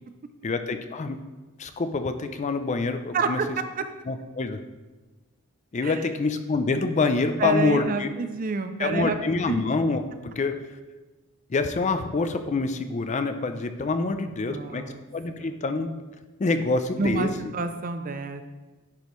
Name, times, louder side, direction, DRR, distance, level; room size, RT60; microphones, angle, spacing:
voice 1, 0.4-1.2 1.6-3.4 4.1-4.6 5.7-8.1 8.8-10.5 11.5-14.8 15.1-15.9 16.4-17.3, left 3 dB, 30° left, 9 dB, 0.4 m, -26 dB
voice 2, 3.1-3.6 5.8-6.1 7.4-9.6 14.1-15.0 15.4-15.6 17.0-18.4, right 4 dB, 40° right, 9 dB, 0.4 m, -29 dB
10.5 x 5.2 x 3.1 m, 1.2 s
head